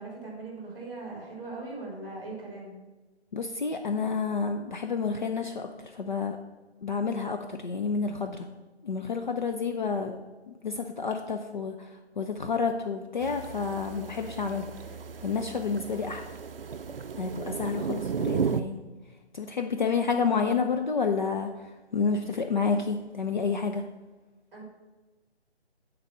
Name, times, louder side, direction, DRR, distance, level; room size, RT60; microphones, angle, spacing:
voice 1, 0.0-2.8 24.5-24.6, right 3 dB, 10° right, -2 dB, 2.4 m, -40 dB
voice 2, 3.3-6.4 6.8-8.5 8.8-10.2 10.5-11.9 12.2-14.7 15.2-16.2 17.2-18.8 19.3-21.5 21.9-23.8, left 5 dB, 45° left, 4 dB, 0.6 m, -29 dB
sound 1, 13.2-18.6, right 6 dB, 55° right, 0.5 m, -34 dB
8.6 x 4.1 x 6.6 m, 1.2 s
figure-of-eight pair, 155°, 33 cm